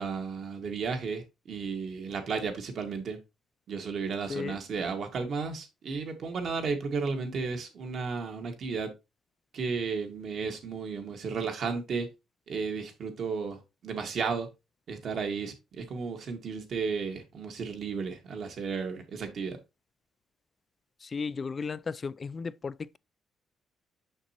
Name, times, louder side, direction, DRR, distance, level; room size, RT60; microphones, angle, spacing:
voice 1, 0.0-3.2 3.7-8.9 9.5-12.1 12.5-14.5 14.9-19.6, right 5 dB, 60° right, 1.7 m, -33 dB
voice 2, 21.0-23.0, left 5 dB, 35° left, 0.3 m, -35 dB
6.5 x 6.1 x 2.9 m
cardioid pair, 90°, 0 cm